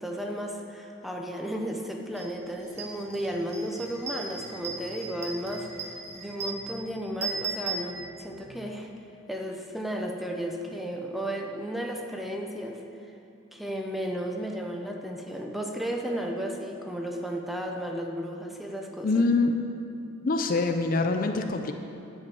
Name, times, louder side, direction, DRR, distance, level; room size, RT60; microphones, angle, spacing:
voice 1, 0.0-8.9 9.3-12.8 13.5-19.3, equal, ahead, 2 dB, 0.7 m, -34 dB
sound 1, 2.2-2.3 2.6-8.5, right 4 dB, 35° right, 1.3 m, -37 dB
voice 2, 19.0-19.7 20.2-21.7, left 3 dB, 45° left, 6 dB, 0.5 m, -25 dB
10.0 x 5.6 x 7.8 m, 2.7 s
head